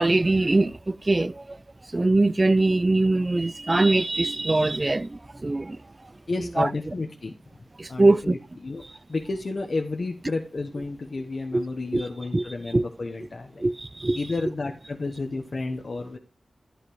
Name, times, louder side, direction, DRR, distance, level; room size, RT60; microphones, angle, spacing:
voice 1, 0.0-1.6 1.9-5.8 6.6-6.7 7.8-8.4 11.5-11.6 11.9-12.0 12.3-12.4 12.7-12.8 13.6-14.2, right 2 dB, 35° right, 0.4 m, -22 dB
voice 2, 6.3-7.3 7.9-8.8 9.1-13.7 14.1-16.2, left 3 dB, 60° left, 1.1 m, -31 dB
11.5 x 9.8 x 3.2 m
cardioid pair, 50°, 0 cm